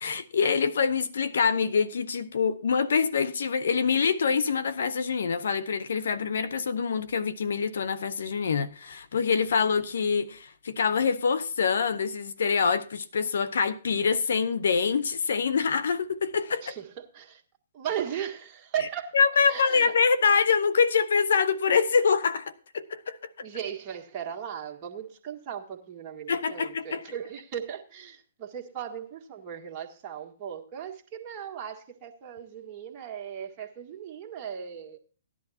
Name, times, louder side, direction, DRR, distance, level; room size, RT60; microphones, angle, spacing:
voice 1, 0.0-16.7 19.1-23.2 26.3-27.0, left 5 dB, 70° left, 0.8 m, -25 dB
voice 2, 16.6-17.4 17.7-19.2 19.5-19.9 23.4-35.0, right 9 dB, 30° right, 1.7 m, -37 dB
16.5 x 11.0 x 2.8 m
hypercardioid pair, 130°, 0 cm